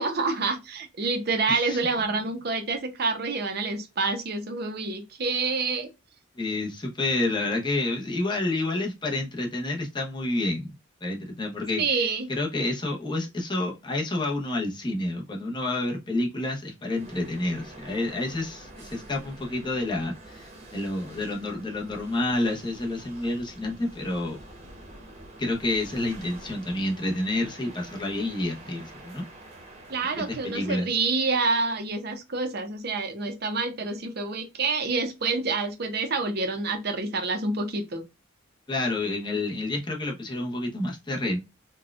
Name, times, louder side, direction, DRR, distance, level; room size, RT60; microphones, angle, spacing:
voice 1, 0.0-5.9 11.8-12.3 29.9-38.0, right 3 dB, 50° right, 0.6 m, -27 dB
voice 2, 1.5-1.8 6.4-10.7 11.0-24.4 25.4-29.2 30.2-30.9 38.7-41.4, left 2 dB, 25° left, 0.8 m, -29 dB
sound 1, 16.9-32.0, right 1 dB, 30° right, 0.9 m, -47 dB
4.2 x 2.3 x 2.3 m
head